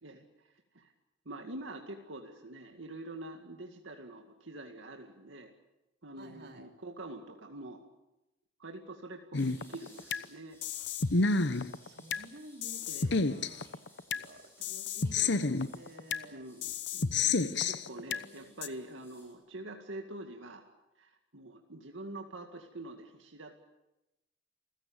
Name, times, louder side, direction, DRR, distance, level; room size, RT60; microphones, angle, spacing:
voice 1, 1.3-5.5 6.0-7.8 8.6-10.6 12.8-13.2 16.3-20.6 21.0-23.6, right 2 dB, 85° right, 3 dB, 2.2 m, -46 dB
voice 2, 6.2-6.6 11.4-11.5 11.8-16.4 17.4-18.5, right 1 dB, 55° right, 3 dB, 3.2 m, -53 dB
sound 1, 9.3-10.2 10.6-12.2 12.6-14.2 14.6-16.2 16.6-18.2 18.6-18.7, left 4 dB, 65° left, 0.9 m, -30 dB
sound 2, 9.4-19.3, left 1 dB, 10° left, 7.7 m, -60 dB
28.0 x 16.0 x 8.8 m, 0.96 s
head